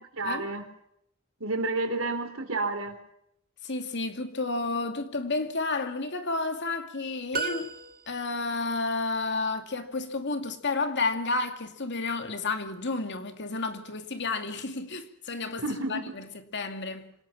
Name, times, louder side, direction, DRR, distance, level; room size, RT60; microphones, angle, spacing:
voice 1, 0.1-0.6 1.4-3.0 15.6-16.0, right 2 dB, 70° right, 3.9 m, -30 dB
voice 2, 3.6-7.7 8.1-17.1, left 3 dB, 55° left, 2.4 m, -31 dB
sound 1, 7.3-8.5, right 5 dB, 45° right, 1.9 m, -34 dB
26.5 x 18.5 x 6.1 m
head